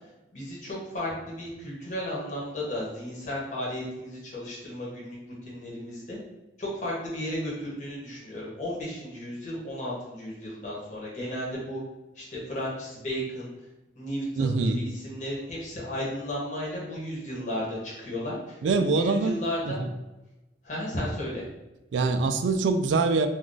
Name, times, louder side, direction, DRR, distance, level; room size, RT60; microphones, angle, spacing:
voice 1, 0.3-5.2 5.4-6.2 6.6-11.8 12.1-13.5 13.9-18.5 18.9-19.8 20.6-21.4, equal, 45° left, -5 dB, 0.9 m, -34 dB
voice 2, 14.4-14.8 18.6-19.4 19.6-19.9 21.9-23.3, right 3 dB, 90° right, 8 dB, 0.3 m, -24 dB
2.4 x 2.2 x 3.8 m, 1.0 s
head